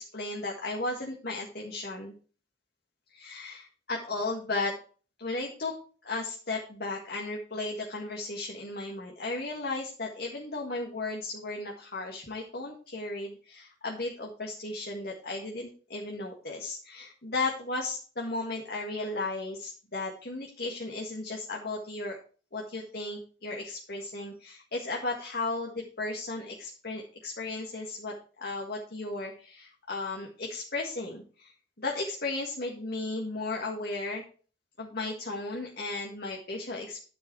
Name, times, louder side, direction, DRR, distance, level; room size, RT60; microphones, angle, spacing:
voice 1, 0.0-2.1 3.1-4.7 5.2-5.8 6.0-22.2 22.5-31.5 31.8-34.2 34.8-37.0, left 2 dB, 60° left, -1 dB, 1.9 m, -35 dB
12.0 x 5.4 x 4.8 m, 0.39 s
head